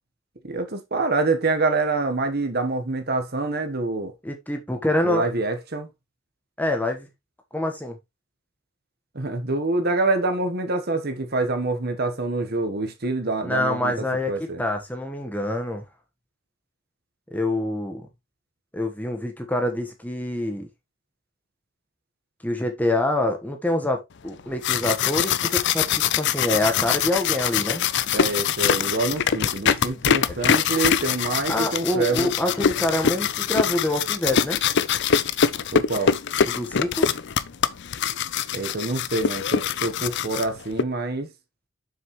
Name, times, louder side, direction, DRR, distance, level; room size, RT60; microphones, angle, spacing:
voice 1, 0.4-4.1 5.0-5.9 9.1-13.9 14.3-14.6 28.1-32.3 35.7-36.2 38.5-41.3, right 3 dB, 45° right, 1.3 m, -26 dB
voice 2, 4.2-5.2 6.6-7.1 7.5-8.0 13.4-15.8 17.3-18.1 18.7-20.7 22.4-27.8 31.5-34.6 36.4-37.1, left 1 dB, 10° left, 1.3 m, -26 dB
sound 1, 24.4-40.8, left 7 dB, 55° left, 0.5 m, -24 dB
7.1 x 6.5 x 3.2 m
head